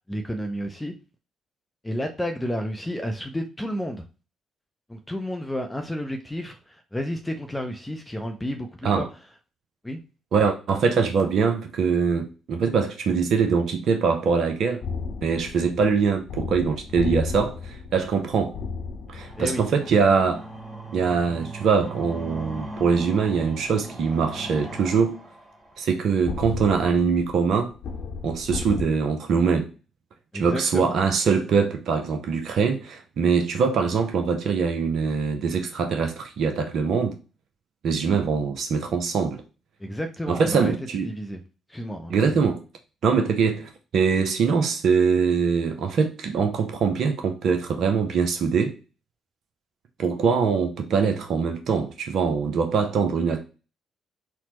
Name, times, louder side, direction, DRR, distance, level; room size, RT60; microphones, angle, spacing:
voice 1, 0.1-0.9 1.8-4.0 4.9-9.1 9.8-10.0 19.4-19.6 30.3-31.0 39.8-40.7 41.0-41.4 41.7-42.4, equal, 10° left, 0.5 m, -31 dB
voice 2, 10.3-14.8 15.2-18.6 19.1-20.4 20.9-25.2 25.8-27.7 28.2-29.7 30.3-37.2 37.8-39.4 40.3-41.1 42.1-42.6 43.0-48.7 50.0-53.4, right 5 dB, 55° right, 0.5 m, -23 dB
sound 1, 14.8-20.4 26.2-28.8, left 5 dB, 60° left, 0.8 m, -34 dB
sound 2, 19.1-26.1, right 2 dB, 10° right, 1.3 m, -39 dB
4.2 x 2.0 x 2.9 m
figure-of-eight pair, 45°, 0 cm